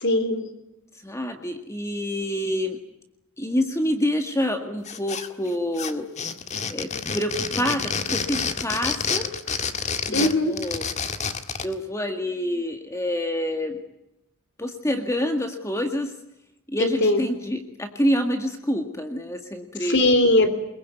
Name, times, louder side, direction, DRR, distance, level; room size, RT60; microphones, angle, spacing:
voice 1, 0.0-0.5 10.1-10.5 16.8-17.2 19.9-20.5, left 1 dB, 55° left, 8 dB, 3.6 m, -20 dB
voice 2, 1.0-2.8 3.4-6.1 6.7-9.3 10.1-10.8 11.6-13.8 14.6-16.1 16.7-20.0, equal, 15° left, 5 dB, 1.9 m, -27 dB
sound 1, 4.9-5.5 5.8-11.7, left 5 dB, 30° left, 1.7 m, -28 dB
24.0 x 22.5 x 9.4 m, 0.84 s
head